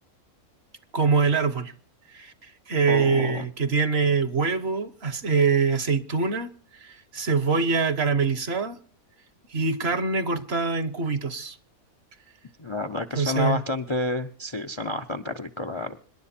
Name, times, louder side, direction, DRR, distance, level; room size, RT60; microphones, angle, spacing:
voice 1, 0.9-1.7 2.1-8.8 9.5-11.6 13.1-13.6, right 5 dB, 50° right, 1.2 m, -24 dB
voice 2, 2.9-3.5 12.6-16.0, left 2 dB, 30° left, 0.5 m, -29 dB
26.0 x 11.0 x 4.3 m
omnidirectional pair, 1.5 m